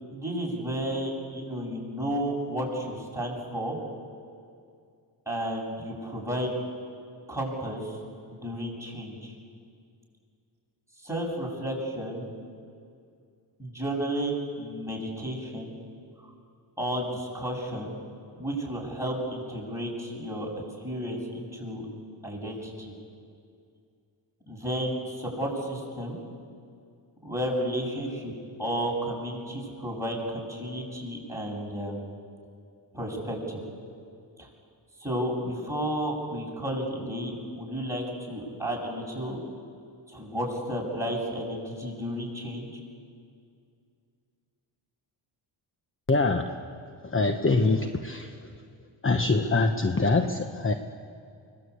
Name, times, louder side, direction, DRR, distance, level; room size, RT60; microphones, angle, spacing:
voice 1, 0.1-3.8 5.3-6.5 7.3-8.0 8.3-9.3 11.0-12.3 13.6-15.7 16.8-18.0 18.3-20.5 20.8-21.9 22.2-22.9 24.5-26.2 27.2-28.3 28.6-32.0 32.9-33.6 34.4-34.5 35.0-39.4 40.1-42.7, equal, 5° right, -2 dB, 7.9 m, -32 dB
voice 2, 46.1-46.6 47.0-48.5 49.0-50.7, left 3 dB, 25° left, 7 dB, 1.2 m, -24 dB
24.5 x 20.0 x 8.6 m, 2.3 s
cardioid pair, 75°, 46 cm